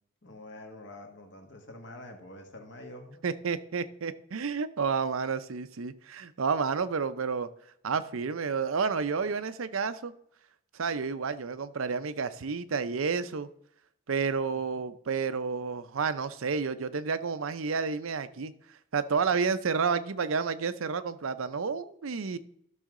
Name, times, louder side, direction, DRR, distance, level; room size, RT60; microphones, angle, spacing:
voice 1, 0.2-3.2 14.5-14.9, left 1 dB, 60° left, 3 dB, 1.7 m, -47 dB
voice 2, 3.2-7.5 7.8-10.1 10.7-13.5 14.1-18.5 18.9-22.4, right 5 dB, 85° right, 12 dB, 0.6 m, -30 dB
13.0 x 6.4 x 3.7 m, 0.71 s
head